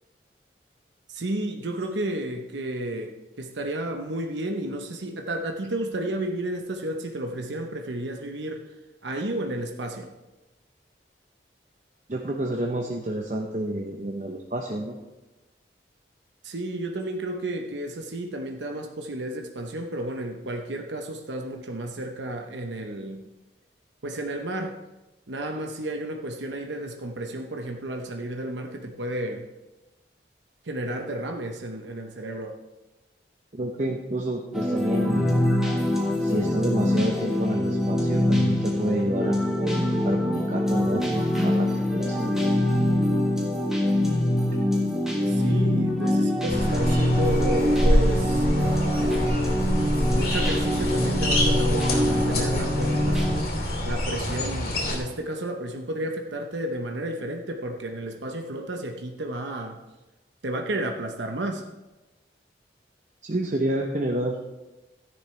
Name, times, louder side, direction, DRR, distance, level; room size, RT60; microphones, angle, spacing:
voice 1, 1.1-8.6 9.0-10.1 16.4-23.2 24.0-24.8 25.3-29.5 30.6-32.5 45.3-49.4 50.1-53.3 53.8-59.8 60.4-61.6, right 1 dB, 85° right, 3 dB, 0.9 m, -32 dB
voice 2, 12.1-15.0 33.5-35.4 36.2-42.5 63.2-64.4, right 1 dB, 40° right, 1 dB, 0.8 m, -29 dB
sound 1, 34.5-53.4, left 1 dB, 5° right, 1.5 m, -24 dB
sound 2, 46.5-55.0, left 1 dB, 55° left, 2.9 m, -26 dB
13.5 x 10.5 x 3.3 m, 1.1 s
head